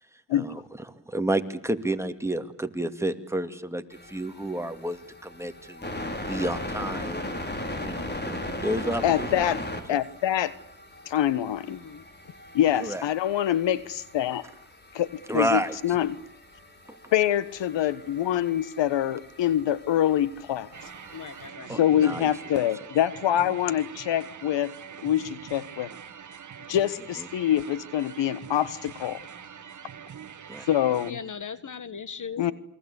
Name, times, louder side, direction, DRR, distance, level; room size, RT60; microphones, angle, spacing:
voice 1, 0.3-0.6 0.9-5.9 6.3-7.3 7.8-9.5 12.8-13.0 15.3-16.0 16.9-17.0 21.7-22.3 27.2-27.3 30.5-30.7, right 1 dB, 5° right, 7 dB, 2.5 m, -30 dB
sound 1, 3.9-21.5, left 1 dB, 25° left, 4.9 m, -39 dB
voice 2, 9.0-9.6 9.9-10.5 11.1-11.8 12.5-14.5 14.9-16.2 17.1-20.7 21.8-24.7 25.0-25.9 26.7-29.2 30.7-31.1 32.4-32.5, left 11 dB, 75° left, 17 dB, 1.3 m, -25 dB
voice 3, 11.7-12.1 21.1-21.7 29.4-29.7 31.0-32.5, left 6 dB, 45° left, 16 dB, 1.6 m, -39 dB
sound 2, 20.7-31.1, right 7 dB, 40° right, 1.5 m, -44 dB
28.5 x 23.0 x 8.3 m, 0.64 s
cardioid pair, 75°, 43 cm